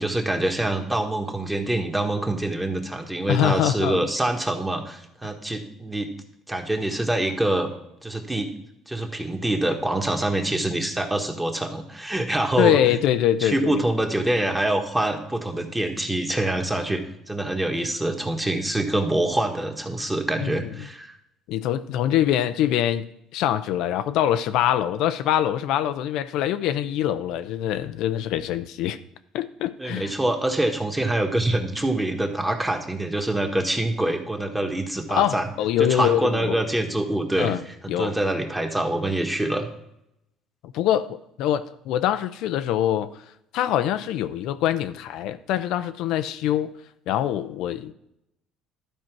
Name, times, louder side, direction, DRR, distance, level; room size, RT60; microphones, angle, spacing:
voice 1, 0.0-6.1 6.5-7.7 8.0-8.5 8.9-12.8 13.4-21.1 29.8-35.5 35.8-37.5 37.8-39.7, right 1 dB, 10° right, 1.5 m, -25 dB
voice 2, 3.3-4.1 5.2-5.3 12.6-13.8 20.4-20.7 21.5-29.0 29.3-30.1 35.1-36.5 37.4-37.6 37.9-38.2 40.7-43.2 43.5-46.8 47.1-47.9, left 11 dB, 75° left, 0.5 m, -24 dB
12.0 x 4.4 x 6.0 m
cardioid pair, 95°, 0 cm